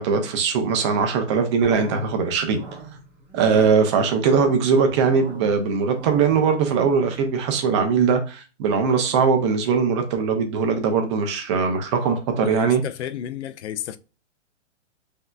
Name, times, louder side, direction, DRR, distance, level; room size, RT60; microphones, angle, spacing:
voice 1, 0.0-2.6 3.3-12.8, right 5 dB, 25° right, 0.5 m, -20 dB
sound 1, 1.6-7.8, right 3 dB, 5° right, 1.0 m, -40 dB
voice 2, 12.4-14.0, left 10 dB, 65° left, 0.5 m, -31 dB
5.6 x 2.7 x 2.3 m
hypercardioid pair, 140°, 37 cm